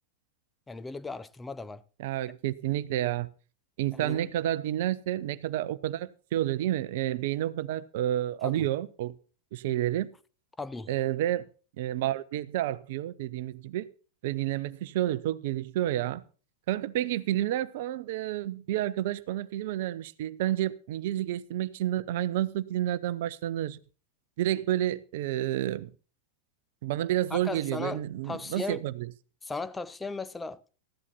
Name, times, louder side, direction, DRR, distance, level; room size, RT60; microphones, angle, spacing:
voice 1, 0.7-1.8 3.9-4.2 8.4-8.7 10.6-10.9 27.3-28.8 29.4-30.6, left 3 dB, 10° left, 0.6 m, -37 dB
voice 2, 2.0-3.3 3.8-9.2 9.5-10.1 10.9-11.5 11.8-13.9 14.2-16.2 16.7-23.8 24.4-25.9 26.8-29.1, right 13 dB, 50° right, 0.6 m, -30 dB
14.5 x 11.0 x 4.2 m
figure-of-eight pair, 90°, 0 cm